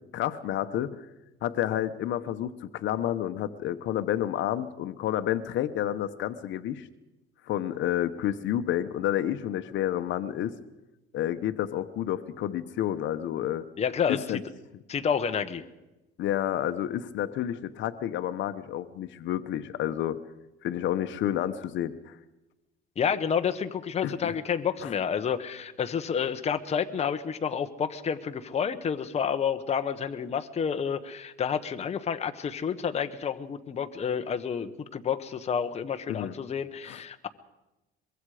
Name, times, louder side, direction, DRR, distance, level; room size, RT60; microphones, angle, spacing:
voice 1, 0.1-1.1 1.4-6.9 7.5-10.5 11.1-13.6 14.1-14.4 16.2-20.2 20.6-22.2 24.0-24.4 24.8-24.9 36.1-36.4 36.8-37.0, left 11 dB, 65° left, 10 dB, 1.1 m, -30 dB
voice 2, 13.8-14.4 14.9-15.6 23.0-37.3, left 7 dB, 30° left, 7 dB, 1.1 m, -29 dB
23.5 x 22.5 x 5.0 m, 1.0 s
cardioid pair, 135°, 21 cm